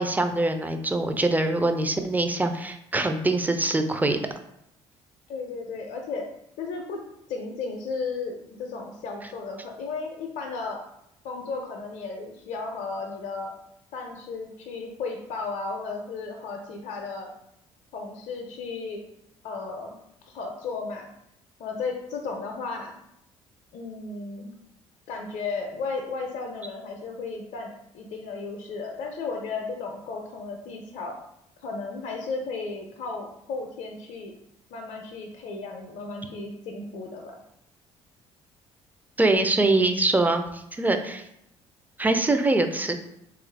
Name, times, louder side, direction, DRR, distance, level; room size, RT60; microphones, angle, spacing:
voice 1, 0.0-4.2 39.2-41.2 42.0-43.0, right 2 dB, 10° right, 7 dB, 0.4 m, -23 dB
voice 2, 5.3-6.3 6.6-7.0 7.3-10.8 11.2-13.5 13.9-17.3 17.9-19.0 19.4-20.0 20.2-21.1 21.6-22.9 23.7-24.5 25.1-31.2 31.6-34.3 34.7-37.4, left 4 dB, 60° left, 2 dB, 0.5 m, -34 dB
3.2 x 2.4 x 3.2 m, 0.78 s
hypercardioid pair, 55°, 15 cm